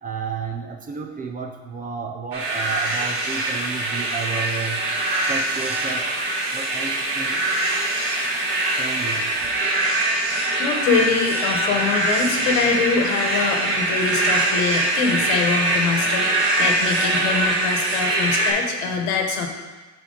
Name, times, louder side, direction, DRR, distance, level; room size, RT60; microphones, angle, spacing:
voice 1, 0.0-4.9 5.2-6.1 6.5-7.4 8.8-9.3, right 5 dB, 25° right, 3 dB, 0.5 m, -32 dB
sound 1, 2.3-18.5, right 2 dB, 40° right, 1.2 m, -23 dB
sound 2, 2.4-10.2, right 3 dB, 80° right, 1.2 m, -34 dB
voice 2, 10.3-19.5, left 5 dB, 80° left, 3 dB, 1.2 m, -24 dB
7.9 x 4.5 x 3.9 m, 1.3 s
cardioid pair, 155°, 35 cm